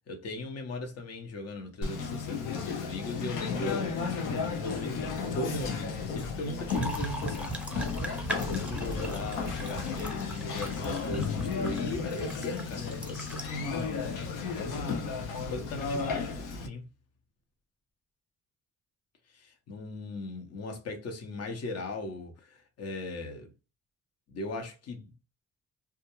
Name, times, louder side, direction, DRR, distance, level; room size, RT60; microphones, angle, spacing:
voice 1, 0.1-14.1 14.5-15.2 15.5-16.9 19.3-23.5 24.3-25.1, left 2 dB, 55° left, 0.9 m, -38 dB
Conversation, 1.8-16.7, left 5 dB, 90° left, 0.6 m, -34 dB
sound 1, 6.7-13.8 14.6-14.7 15.8-16.1, right 2 dB, 5° right, 0.5 m, -39 dB
2.4 x 2.1 x 2.9 m
cardioid pair, 90°, 30 cm